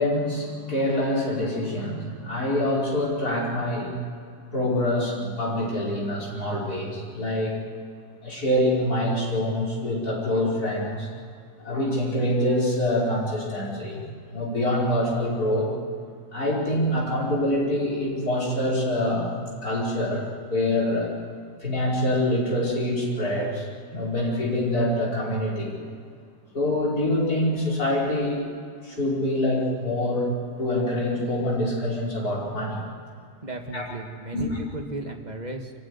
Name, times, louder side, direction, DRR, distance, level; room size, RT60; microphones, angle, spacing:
voice 1, 0.0-3.9 4.5-7.6 8.2-11.1 11.6-14.0 14.3-15.7 16.3-19.3 19.6-20.2 20.5-21.1 21.6-25.8 26.5-28.4 28.8-30.3 30.6-32.8 33.7-33.9 34.3-34.5, left 1 dB, 65° left, -5 dB, 6.1 m, -25 dB
voice 2, 33.4-35.7, right 2 dB, 25° right, 3 dB, 2.0 m, -35 dB
25.5 x 15.0 x 9.9 m, 2.2 s
omnidirectional pair, 1.7 m